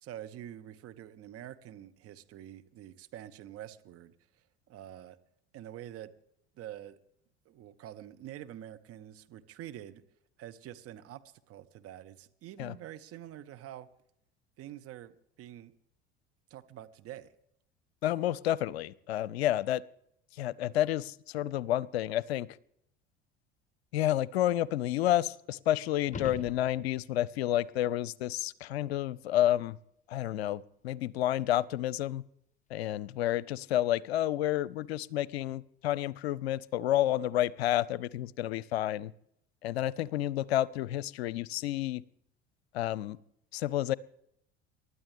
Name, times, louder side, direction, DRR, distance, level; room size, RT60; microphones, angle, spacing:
voice 1, 0.0-4.1 4.7-5.2 5.5-6.1 6.5-7.0 7.4-10.0 10.4-11.2 11.5-13.9 14.6-15.1 15.4-15.7 16.5-17.3, right 12 dB, 45° right, 1.3 m, -46 dB
voice 2, 18.0-19.8 20.4-22.5 23.9-29.8 30.1-32.2 32.7-39.1 39.6-42.0 42.7-43.2 43.5-43.9, left 13 dB, 70° left, 0.6 m, -30 dB
sound 1, 26.0-27.3 32.1-32.2, left 6 dB, 20° left, 1.1 m, -42 dB
29.0 x 12.5 x 3.5 m
figure-of-eight pair, 65°, 33 cm